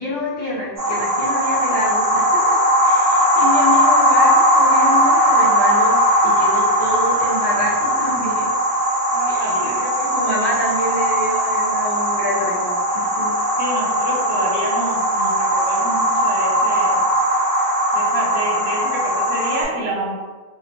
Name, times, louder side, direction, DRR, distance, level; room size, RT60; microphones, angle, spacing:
voice 1, 0.0-2.6 2.8-8.5 9.3-13.3, left 1 dB, 5° left, -11 dB, 1.1 m, -27 dB
sound 1, 0.8-19.6, equal, 15° right, 0.9 m, -18 dB
voice 2, 9.1-9.8 13.6-17.0 17.9-20.1, right 1 dB, 45° right, -3 dB, 0.8 m, -28 dB
4.2 x 2.3 x 3.0 m, 1.3 s
omnidirectional pair, 1.3 m